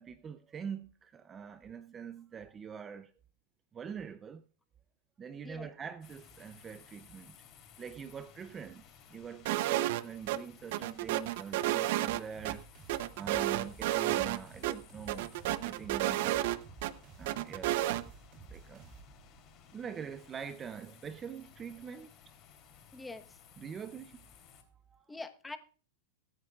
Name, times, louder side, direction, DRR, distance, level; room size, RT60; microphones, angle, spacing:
voice 1, 0.0-3.1 3.7-4.4 5.2-7.4 7.8-8.8 9.1-12.6 13.1-15.3 15.6-16.4 17.2-17.9 18.5-18.9 19.7-22.1 23.6-24.2 24.6-25.1, right 7 dB, 20° right, 0.5 m, -44 dB
sound 1, 6.0-24.6, left 7 dB, 35° left, 3.4 m, -58 dB
sound 2, 9.5-10.0 10.3-10.4 10.7-12.5 12.9-14.4 14.6-14.7 15.1-16.9 17.3-18.0, right 15 dB, 60° right, 0.7 m, -31 dB
sound 3, 12.3-19.5, right 5 dB, 40° right, 2.8 m, -53 dB
voice 2, 22.9-23.4 25.1-25.6, left 3 dB, 10° left, 1.1 m, -44 dB
23.0 x 9.4 x 2.4 m
hypercardioid pair, 125°, 0 cm